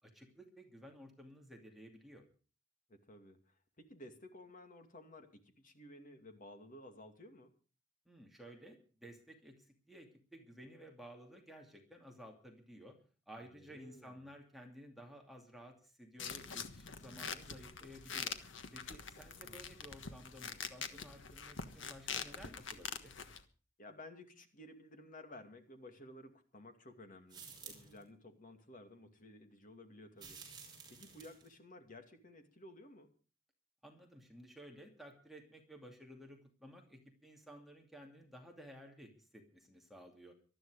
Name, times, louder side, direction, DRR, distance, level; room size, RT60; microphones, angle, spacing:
voice 1, 0.0-2.2 8.1-13.0 13.3-18.4 18.7-23.1 33.8-40.3, equal, ahead, 1 dB, 2.6 m, -55 dB
voice 2, 2.9-7.5 13.4-14.3 19.2-19.7 23.8-30.4 30.9-33.1, left 1 dB, 45° left, 6 dB, 2.4 m, -55 dB
sound 1, 16.2-23.4, left 6 dB, 65° left, 1.4 m, -45 dB
sound 2, 27.3-28.0 30.2-31.5, right 5 dB, 20° right, 5.7 m, -52 dB
19.5 x 13.0 x 4.9 m, 0.38 s
head